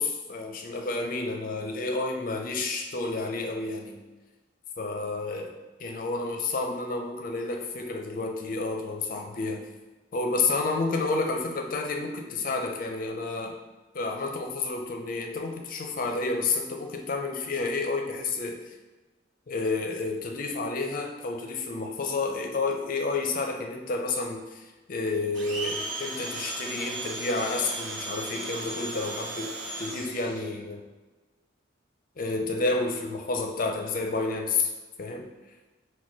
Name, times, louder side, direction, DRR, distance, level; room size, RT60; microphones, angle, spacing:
voice 1, 0.0-4.0 4.8-5.5 5.8-9.7 10.1-13.6 13.9-18.8 19.5-29.5 29.8-30.8 32.2-34.7 35.0-35.3, left 3 dB, 45° left, 3 dB, 0.5 m, -30 dB
Domestic sounds home sounds, 25.3-30.4, right 2 dB, 70° right, 0.9 m, -36 dB
4.1 x 2.2 x 4.6 m, 1.2 s
head